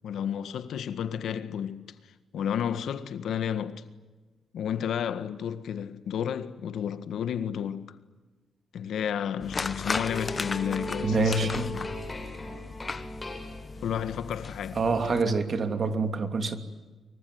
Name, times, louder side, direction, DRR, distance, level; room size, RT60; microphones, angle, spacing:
voice 1, 0.0-1.9 2.3-3.8 4.5-8.0 8.7-11.9 13.8-14.8 15.1-15.4, left 8 dB, 80° left, 1.7 m, -32 dB
sound 1, 9.4-15.2, left 4 dB, 35° left, 1.2 m, -36 dB
sound 2, 10.0-14.1, left 1 dB, 20° left, 7.8 m, -38 dB
voice 2, 11.0-11.7 14.8-16.6, right 3 dB, 45° right, 2.9 m, -26 dB
25.0 x 24.0 x 9.5 m
cardioid pair, 105°, 0 cm